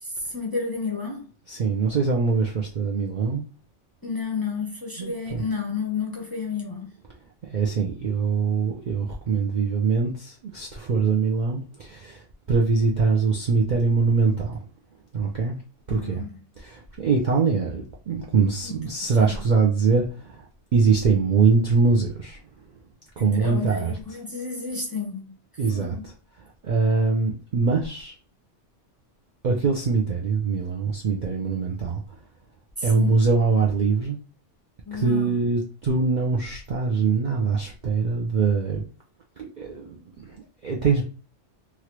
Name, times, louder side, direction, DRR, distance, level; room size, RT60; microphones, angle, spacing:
voice 1, 0.0-1.3 4.0-6.9 15.9-16.4 18.6-18.8 19.2-19.4 23.2-25.4 25.7-26.1 32.8-33.2 34.9-35.4, left 5 dB, 25° left, 0.5 m, -31 dB
voice 2, 1.5-3.4 5.0-5.4 7.4-12.2 12.5-14.6 15.1-15.6 15.9-16.2 16.6-20.5 20.7-22.4 23.2-23.9 25.6-26.1 26.6-28.1 29.4-32.0 32.8-34.2 34.9-38.8 39.4-40.4 40.6-41.0, right 4 dB, 60° right, 0.5 m, -23 dB
3.2 x 2.5 x 2.9 m
omnidirectional pair, 1.2 m